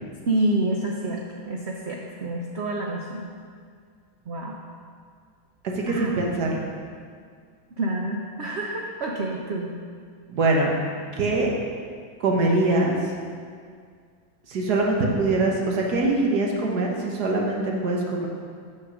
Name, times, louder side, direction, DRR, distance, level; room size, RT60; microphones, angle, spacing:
voice 1, 0.2-3.3 4.3-4.6 5.8-6.1 7.8-9.7, right 1 dB, 80° right, -1 dB, 0.5 m, -28 dB
voice 2, 5.6-6.6 10.3-10.7 11.1-11.5 12.2-12.9 14.5-18.3, right 2 dB, 60° right, -1 dB, 1.5 m, -23 dB
6.7 x 6.5 x 6.1 m, 2.1 s
omnidirectional pair, 2.1 m